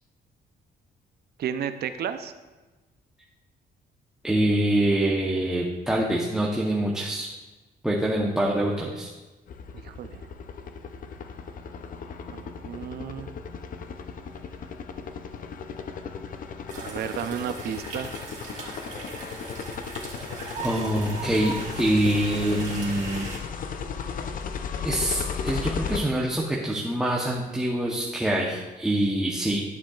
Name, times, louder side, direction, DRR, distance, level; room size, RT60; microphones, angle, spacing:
voice 1, 1.4-2.3 9.7-10.3 12.3-13.3 16.7-18.1, right 8 dB, 70° right, 10 dB, 0.6 m, -33 dB
voice 2, 4.2-7.3 7.8-9.1 20.6-23.3 24.8-29.6, right 1 dB, 5° right, -2 dB, 0.9 m, -25 dB
sound 1, 9.5-26.0, left 6 dB, 50° left, 0.6 m, -36 dB
sound 2, 16.7-23.4, right 3 dB, 45° right, 1.9 m, -39 dB
11.5 x 7.3 x 2.4 m, 1.2 s
cardioid pair, 120°, 18 cm